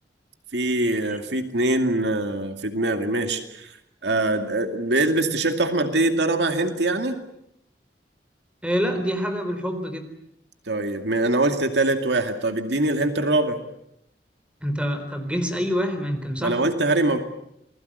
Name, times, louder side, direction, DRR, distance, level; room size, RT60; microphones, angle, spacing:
voice 1, 0.5-3.7 4.0-7.2 10.7-13.6 16.4-17.2, right 2 dB, 75° right, 6 dB, 2.4 m, -23 dB
voice 2, 8.6-10.0 14.6-16.6, equal, 5° right, 7 dB, 4.1 m, -26 dB
28.5 x 21.0 x 8.2 m, 0.78 s
head